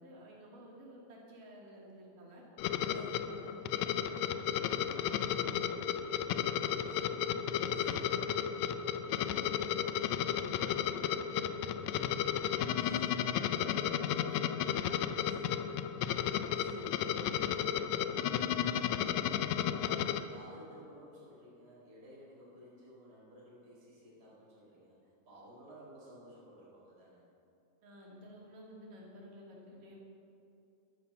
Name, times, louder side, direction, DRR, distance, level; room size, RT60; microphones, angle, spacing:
voice 1, 0.0-2.4 2.9-6.2 6.8-8.0 8.6-10.1 10.6-12.2 12.4-14.7 15.6-15.8 20.0-20.4 27.8-30.0, equal, 90° right, -3 dB, 4.3 m, -53 dB
sound 1, 2.6-20.2, left 10 dB, 80° left, 1.6 m, -33 dB
voice 2, 2.9-3.4 6.8-8.6 12.8-13.2 15.3-15.7 16.5-19.4 19.7-25.0 25.2-27.2, equal, 30° right, -7 dB, 4.8 m, -54 dB
13.0 x 11.5 x 7.1 m, 2.6 s
omnidirectional pair, 3.7 m